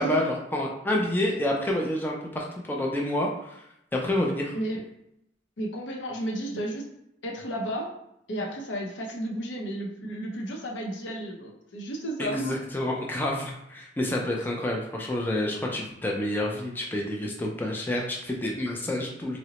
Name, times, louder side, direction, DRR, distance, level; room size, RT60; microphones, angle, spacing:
voice 1, 0.0-3.5 4.0-4.6 12.2-19.4, left 1 dB, 10° left, -1 dB, 0.4 m, -28 dB
voice 2, 5.6-6.9 7.2-7.9 8.3-12.6 14.3-14.5, right 1 dB, 90° left, 0 dB, 0.7 m, -33 dB
3.8 x 2.0 x 2.9 m, 0.81 s
head